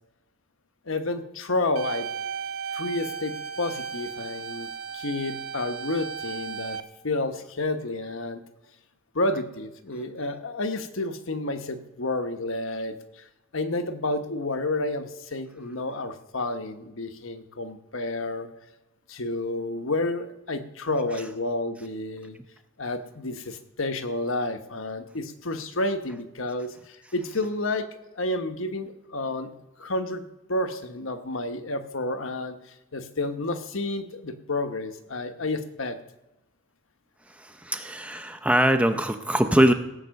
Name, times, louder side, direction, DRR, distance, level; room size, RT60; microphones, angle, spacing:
voice 1, 0.9-2.1 2.7-6.8 7.0-8.4 9.1-13.0 13.5-18.5 19.1-22.4 22.8-27.9 28.2-29.5 29.8-32.6 32.9-36.0, left 2 dB, 70° left, 8 dB, 1.1 m, -30 dB
sound 1, 1.8-6.8, right 6 dB, 85° right, 0.9 m, -35 dB
voice 2, 37.3-39.7, right 1 dB, 5° right, 7 dB, 0.6 m, -22 dB
16.5 x 8.0 x 6.5 m, 0.96 s
head